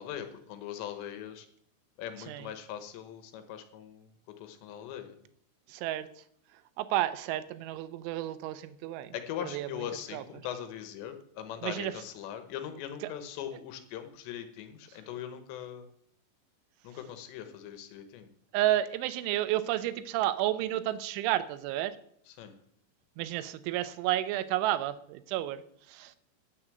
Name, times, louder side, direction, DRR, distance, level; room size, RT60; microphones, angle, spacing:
voice 1, 0.0-1.5 2.0-5.2 9.1-15.9 16.8-18.3 22.3-22.6, left 10 dB, 75° left, 9 dB, 3.1 m, -41 dB
voice 2, 5.7-6.1 6.8-9.1 9.4-9.8 10.1-10.4 11.6-11.9 13.0-13.1 18.5-22.0 23.2-25.6 25.9-26.1, right 13 dB, 85° right, 13 dB, 3.1 m, -31 dB
9.7 x 8.0 x 7.6 m, 0.68 s
omnidirectional pair, 5.4 m